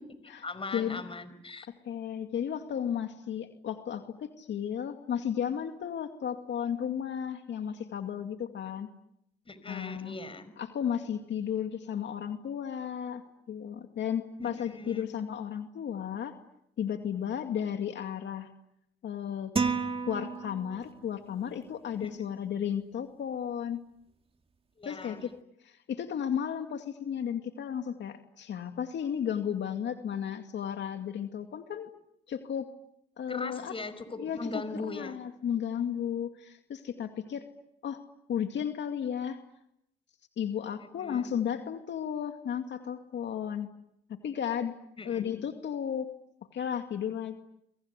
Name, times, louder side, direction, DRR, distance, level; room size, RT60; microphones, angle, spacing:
voice 1, 0.0-1.7 9.5-10.5 14.4-15.1 22.0-22.1 24.8-25.2 33.3-35.2 40.8-41.3 45.0-45.2, left 3 dB, 25° left, 13 dB, 5.3 m, -40 dB
voice 2, 1.8-8.9 9.6-10.2 10.6-16.3 16.8-18.5 19.0-19.6 20.1-23.8 24.9-25.3 25.6-31.9 32.3-32.7 33.2-33.7 34.2-34.4 34.8-37.5 37.8-38.0 38.3-39.4 40.4-43.7 44.1-44.7 45.0-46.1 46.5-47.4, left 8 dB, 65° left, 6 dB, 2.4 m, -34 dB
sound 1, 19.6-21.1, right 4 dB, 30° right, 2.2 m, -31 dB
29.0 x 24.5 x 8.3 m, 0.77 s
cardioid pair, 90°, 20 cm